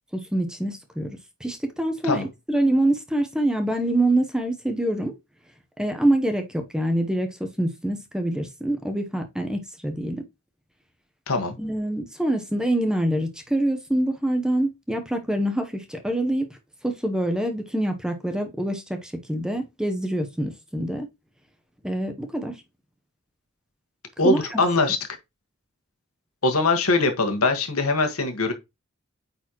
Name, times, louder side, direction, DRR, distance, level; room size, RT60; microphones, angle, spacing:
voice 1, 0.1-5.1 5.8-10.2 11.6-16.5 16.8-21.1 21.8-22.6 24.2-24.6, right 1 dB, 5° right, 0.9 m, -25 dB
voice 2, 24.2-25.0 26.4-28.5, left 3 dB, 85° left, 1.5 m, -22 dB
8.9 x 4.1 x 3.0 m
head